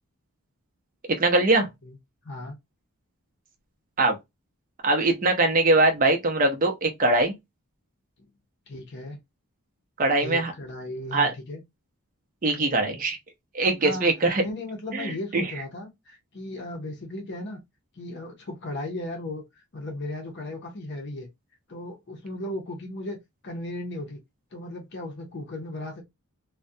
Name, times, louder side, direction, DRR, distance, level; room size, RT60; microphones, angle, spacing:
voice 1, 1.1-1.7 4.0-4.2 4.8-7.3 10.0-10.5 11.1-11.3 12.4-13.2 13.5-14.4 14.9-15.5, right 2 dB, 40° right, 0.6 m, -22 dB
voice 2, 2.2-2.6 8.7-9.2 10.2-11.6 13.8-17.6 18.0-19.4 19.7-21.3 21.7-23.2 23.4-24.2 24.5-26.0, left 1 dB, 50° left, 0.6 m, -36 dB
2.3 x 2.1 x 2.6 m
head